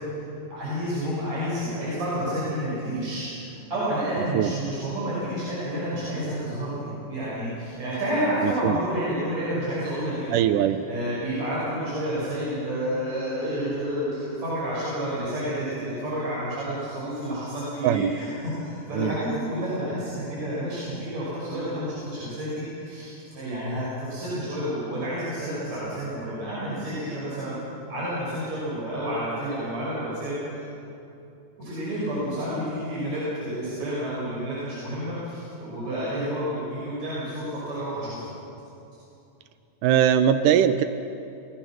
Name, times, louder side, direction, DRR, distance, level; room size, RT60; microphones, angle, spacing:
voice 1, 0.5-10.5 10.9-27.5 27.9-30.6 31.6-38.3, equal, 60° right, -8 dB, 7.1 m, -30 dB
voice 2, 8.4-8.8 10.3-10.8 17.8-18.1 18.9-19.2 39.8-40.8, right 10 dB, 85° right, 10 dB, 2.2 m, -21 dB
29.0 x 18.5 x 6.2 m, 2.8 s
omnidirectional pair, 3.6 m